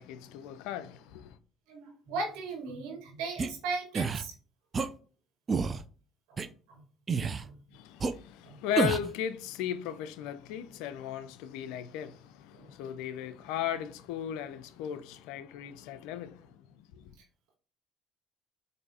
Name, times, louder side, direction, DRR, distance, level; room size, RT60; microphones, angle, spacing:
voice 1, 0.0-1.4 7.7-17.1, left 10 dB, 80° left, 0.3 m, -37 dB
voice 2, 1.7-4.3 6.3-6.4 6.7-6.8 7.4-7.6 8.4-8.6 12.5-12.7, right 3 dB, 80° right, 1.5 m, -37 dB
sound 1, 3.4-3.5 3.9-4.2 4.7-4.9 5.5-5.8 6.4-6.5 7.1-7.5 8.0-8.1 8.8-9.1, right 5 dB, 40° right, 0.4 m, -29 dB
4.5 x 2.6 x 2.7 m
supercardioid pair, 65°, 0 cm